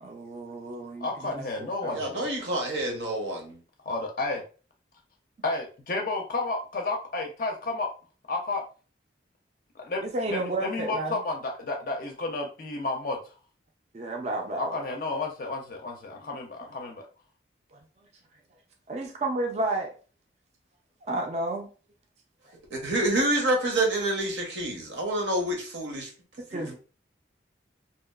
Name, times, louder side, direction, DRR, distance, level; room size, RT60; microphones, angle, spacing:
voice 1, 0.0-1.3 1.6-1.9 4.3-4.4 10.0-11.2 13.9-14.7 17.7-17.8 18.9-20.0 21.0-21.7 26.5-26.8, right 2 dB, 35° right, 0.4 m, -31 dB
voice 2, 1.0-2.3 3.9-4.4 5.4-7.9 8.3-8.6 9.8-10.0 10.3-13.2 14.6-17.0, left 3 dB, 50° left, 0.4 m, -31 dB
voice 3, 1.9-3.6 22.7-26.1 26.5-26.8, right 1 dB, 75° right, 0.8 m, -28 dB
2.7 x 2.3 x 2.2 m
head